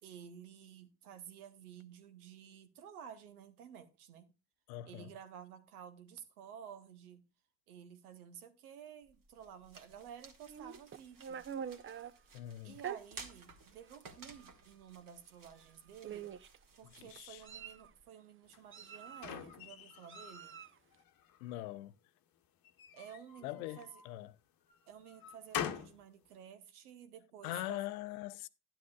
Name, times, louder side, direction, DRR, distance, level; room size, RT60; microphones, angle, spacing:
voice 1, 0.0-4.3 4.8-7.2 7.7-11.5 12.6-16.3 16.8-20.6 22.9-24.0 24.9-27.8, right 8 dB, 80° right, 1.0 m, -53 dB
voice 2, 4.7-5.1 12.3-12.8 16.9-17.4 21.4-21.9 23.4-24.3 27.4-28.5, left 15 dB, 75° left, 0.6 m, -42 dB
sound 1, 9.0-18.0, right 4 dB, 45° right, 1.8 m, -57 dB
Meow, 10.5-12.1 12.8-13.0 13.8-14.0 14.3-14.5 15.6-15.7 16.0-16.6 17.2-17.9 18.7-19.5 20.1-20.8, right 8 dB, 30° right, 0.6 m, -45 dB
sound 2, 18.5-20.5 20.9-21.6 22.6-24.1 24.7-26.0, left 9 dB, 50° left, 1.0 m, -44 dB
11.5 x 11.0 x 2.3 m
figure-of-eight pair, 50°, 44 cm